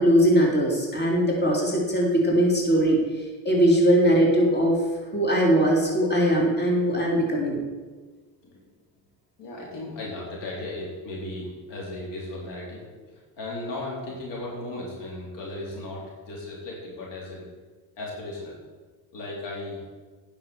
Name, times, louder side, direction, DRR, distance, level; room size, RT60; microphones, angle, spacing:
voice 1, 0.0-4.8 5.1-7.6, equal, 25° left, -2 dB, 3.4 m, -21 dB
voice 2, 9.4-12.9 13.1-17.4 18.0-18.6 19.1-19.8, left 2 dB, 80° left, -4 dB, 4.0 m, -36 dB
9.9 x 6.5 x 7.2 m, 1.4 s
supercardioid pair, 80°, 42 cm